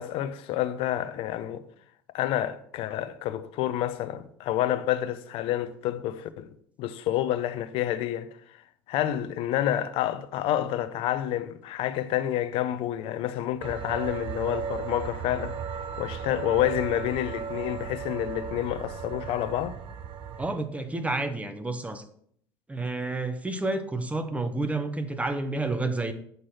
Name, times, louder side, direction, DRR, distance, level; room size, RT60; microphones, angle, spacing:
voice 1, 0.0-1.6 2.1-6.5 6.8-8.3 8.9-15.6 16.0-19.8, left 12 dB, 55° left, 0.7 m, -29 dB
sound 1, 13.6-20.5, right 6 dB, 50° right, 0.9 m, -36 dB
voice 2, 20.4-22.0 22.7-26.1, right 2 dB, 10° right, 1.0 m, -30 dB
8.0 x 6.2 x 4.3 m
hypercardioid pair, 70°, 11 cm